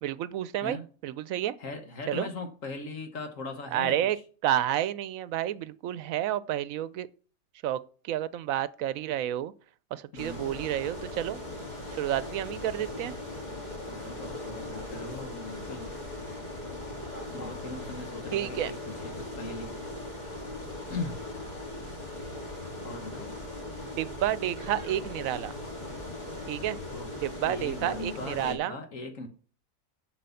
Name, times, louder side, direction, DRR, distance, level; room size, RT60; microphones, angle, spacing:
voice 1, 0.0-1.5 2.1-2.3 3.7-4.2 4.4-7.1 7.6-9.5 9.9-11.4 11.9-13.1 18.3-18.7 23.8-25.5 26.5-26.8 27.2-28.8, right 12 dB, 75° right, 1.0 m, -30 dB
voice 2, 1.6-4.0 10.1-10.5 12.8-13.2 13.9-15.9 17.3-19.7 20.9-21.2 22.8-23.4 26.9-27.1 27.4-29.3, left 3 dB, 65° left, 1.6 m, -39 dB
sound 1, 10.2-28.5, left 1 dB, 30° left, 3.1 m, -39 dB
7.6 x 6.7 x 7.0 m
omnidirectional pair, 1.4 m